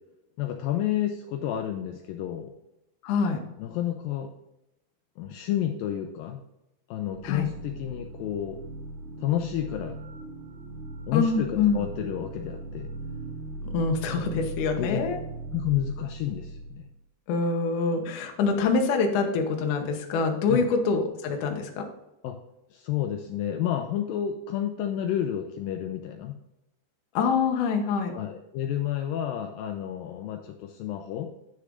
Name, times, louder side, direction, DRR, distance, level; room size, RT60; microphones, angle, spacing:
voice 1, 0.4-2.5 3.6-4.3 5.2-6.4 6.9-8.6 9.2-10.0 11.1-12.9 14.0-14.1 14.8-15.0 15.5-16.9 20.5-20.7 22.2-22.4 22.7-26.4 28.1-31.3, left 11 dB, 90° left, 4 dB, 2.0 m, -30 dB
voice 2, 3.0-3.4 7.2-7.5 11.1-11.8 13.7-15.2 17.3-21.9 27.1-28.1, left 4 dB, 65° left, 4 dB, 2.1 m, -25 dB
sound 1, 7.1-17.0, right 2 dB, 85° right, 1.7 m, -39 dB
9.9 x 6.5 x 3.8 m, 0.89 s
omnidirectional pair, 4.7 m